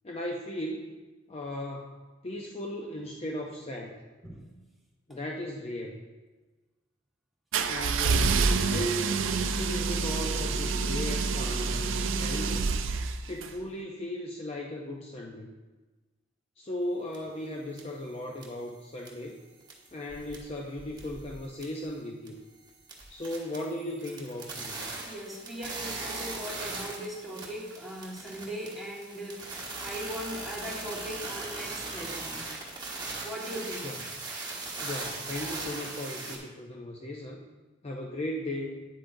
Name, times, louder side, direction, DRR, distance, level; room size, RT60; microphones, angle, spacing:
voice 1, 0.0-0.9 1.3-1.9 2.2-4.0 5.1-6.0 7.6-9.3 9.6-12.7 13.3-15.5 16.6-19.4 19.9-22.4 23.1-24.9 33.8-33.9 34.8-37.4 37.8-38.9, left 1 dB, 30° left, 0 dB, 0.5 m, -37 dB
sound 1, 7.5-13.5, right 4 dB, 75° right, 0.5 m, -27 dB
sound 2, 17.1-17.2 17.8-17.9 18.4-18.7 19.0-19.3 19.6-20.5 20.8-21.9 22.3-22.4 22.7-36.4, right 3 dB, 20° right, 1.2 m, -39 dB
voice 2, 25.0-32.4 33.2-33.9, equal, ahead, -5 dB, 1.6 m, -39 dB
9.0 x 8.2 x 2.6 m, 1.3 s
head